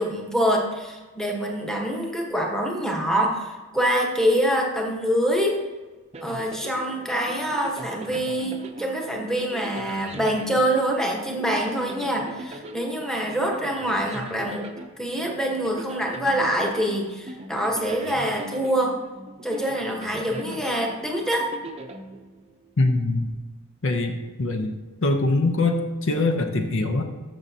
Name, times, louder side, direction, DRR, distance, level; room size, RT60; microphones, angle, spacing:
voice 1, 0.0-5.6 6.2-14.7 15.0-19.0 19.4-21.5, equal, ahead, 0 dB, 1.1 m, -25 dB
sound 1, 6.1-22.7, right 2 dB, 30° right, 0.6 m, -40 dB
voice 2, 22.8-23.2 23.8-24.7 25.0-27.0, left 2 dB, 60° left, 5 dB, 0.7 m, -23 dB
13.5 x 6.6 x 2.8 m, 1.3 s
head